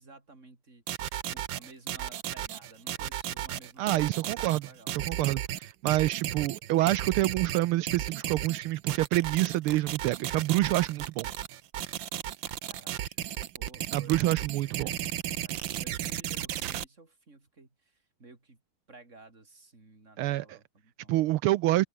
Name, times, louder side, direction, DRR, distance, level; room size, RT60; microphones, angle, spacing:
voice 1, 0.0-4.9 12.7-14.4 14.6-18.6 18.9-21.1, right 3 dB, 30° right, 4.5 m, -54 dB
sound 1, 0.9-16.8, right 12 dB, 65° right, 1.6 m, -34 dB
voice 2, 3.8-4.7 5.1-11.3 13.9-14.9 20.2-20.6 21.1-21.8, right 16 dB, 80° right, 1.5 m, -27 dB
open air
omnidirectional pair, 2.4 m